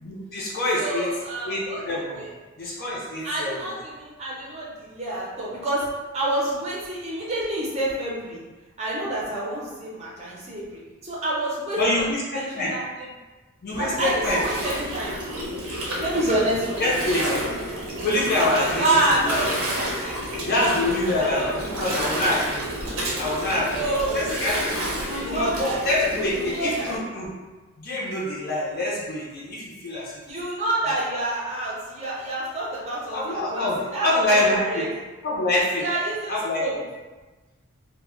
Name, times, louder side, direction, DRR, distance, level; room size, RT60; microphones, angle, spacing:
voice 1, 0.0-1.1 1.5-2.2 2.6-3.6 11.8-12.7 13.6-14.4 16.8-17.5 18.0-18.9 19.2-19.4 20.4-22.7 23.2-23.9 24.1-24.9 25.2-27.3 27.8-30.1 33.1-34.9 35.2-35.8 36.3-36.6, left 1 dB, 45° left, -6 dB, 0.5 m, -25 dB
voice 2, 0.8-1.8 2.2-2.3 3.2-5.9 6.1-8.4 8.8-13.1 13.8-15.2 16.0-17.9 18.7-20.4 20.8-21.6 23.7-25.8 26.3-26.9 30.3-35.0 35.8-36.7, right 1 dB, 30° right, -5 dB, 0.5 m, -28 dB
Gurgling, 13.7-27.0, equal, 80° right, 0.7 m, -31 dB
2.1 x 2.0 x 3.6 m, 1.2 s
head